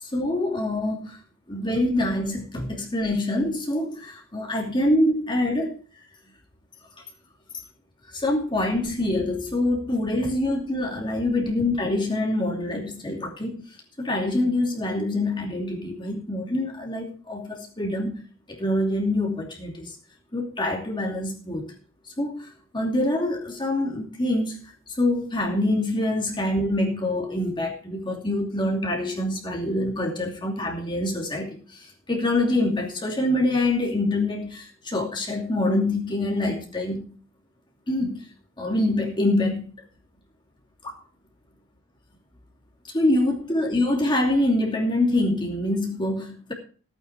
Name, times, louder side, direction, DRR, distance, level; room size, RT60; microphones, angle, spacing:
voice 1, 0.0-1.2 1.5-5.7 8.1-18.1 18.5-20.0 20.3-21.6 22.2-24.6 24.9-37.0 37.9-38.3 38.6-39.7 40.8-40.9 42.9-46.5, left 1 dB, 25° left, 0 dB, 2.7 m, -25 dB
15.5 x 9.3 x 4.7 m, 0.40 s
head